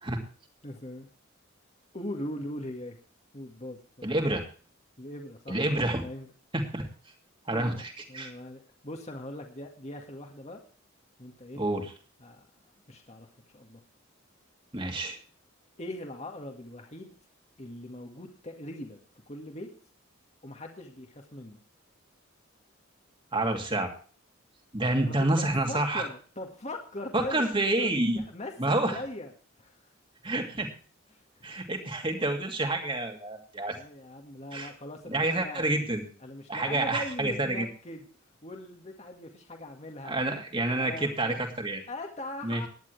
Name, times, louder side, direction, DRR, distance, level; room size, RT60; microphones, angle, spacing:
voice 1, 0.6-1.1 1.9-3.0 3.3-4.1 5.0-5.6 5.9-6.3 7.5-7.8 8.1-10.6 11.2-11.6 12.2-12.5 12.9-13.3 13.5-13.8 15.8-17.1 17.6-19.0 19.3-19.7 20.4-21.6 25.1-27.4 27.8-27.9 28.3-29.3 29.6-29.8 31.1-31.4 33.7-35.7 36.2-38.0 38.4-41.4 41.9-42.7, left 1 dB, 35° left, 2 dB, 1.9 m, -40 dB
voice 2, 4.0-4.4 5.5-6.0 6.5-6.9 7.5-8.3 11.6-11.9 14.7-15.2 23.3-23.9 24.7-26.1 27.1-28.2 28.6-29.0 30.2-30.7 31.4-33.8 34.5-34.7 35.1-36.1 36.5-37.7 40.0-41.8 42.4-42.6, right 2 dB, 25° right, 4 dB, 2.7 m, -28 dB
19.0 x 10.5 x 3.4 m, 0.40 s
head